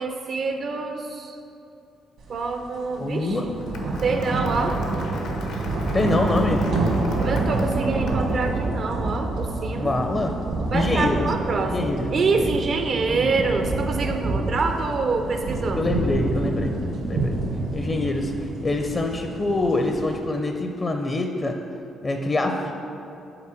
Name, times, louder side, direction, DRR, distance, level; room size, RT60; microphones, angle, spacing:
voice 1, 0.0-1.4 2.3-3.5 4.0-4.8 7.2-9.9 10.7-15.8, right 4 dB, 55° right, 5 dB, 0.4 m, -26 dB
sound 1, 2.4-2.5 2.9-20.2, right 2 dB, 75° right, 1.4 m, -27 dB
voice 2, 3.0-3.5 4.3-4.4 5.9-6.7 9.7-10.4 10.7-11.2 11.7-12.5 13.1-13.4 15.7-16.8 17.1-17.4 17.7-21.6 22.0-22.7, left 2 dB, 30° left, 4 dB, 0.5 m, -25 dB
Applause, 3.3-8.5, left 3 dB, 85° left, 0.9 m, -41 dB
5.8 x 4.3 x 6.4 m, 2.8 s
cardioid pair, 90°, 0 cm